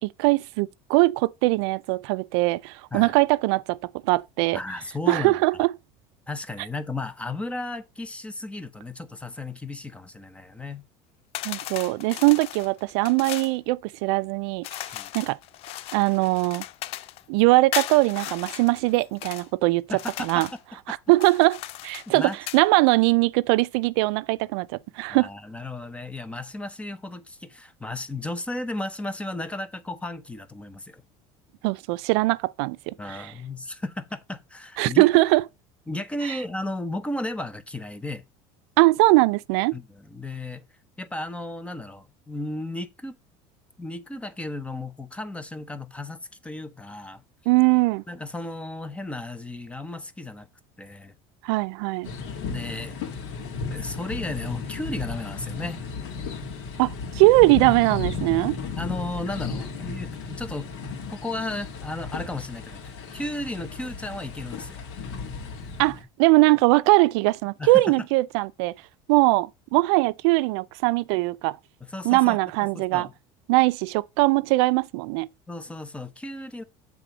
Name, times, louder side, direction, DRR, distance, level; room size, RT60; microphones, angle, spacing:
voice 1, 0.0-4.6 5.1-5.7 11.4-14.7 15.1-15.4 15.9-16.6 17.3-19.8 20.2-20.5 21.1-24.7 25.0-25.3 31.6-33.2 34.8-35.4 38.8-39.7 47.5-48.0 51.4-52.1 56.8-58.6 65.8-68.7 69.1-71.6 72.0-73.1 73.5-75.3, right 22 dB, 80° right, 0.4 m, -21 dB
voice 2, 4.5-5.4 6.3-10.8 14.9-15.1 19.9-21.0 22.1-22.4 25.1-31.0 33.0-35.1 35.9-38.2 39.7-40.6 41.0-43.2 43.8-47.2 48.1-50.5 50.8-51.1 52.5-53.0 53.7-55.9 58.3-58.5 58.7-60.7 61.1-64.8 67.6-67.9 71.8-73.1 75.5-76.6, left 2 dB, 10° left, 0.7 m, -34 dB
sound 1, 11.3-13.6 14.6-17.2 17.7-19.5 19.9-20.6 21.1-22.6, left 15 dB, 45° left, 0.4 m, -36 dB
sound 2, 52.0-66.0, left 4 dB, 85° left, 1.9 m, -34 dB
7.6 x 3.6 x 5.1 m
cardioid pair, 140°, 14 cm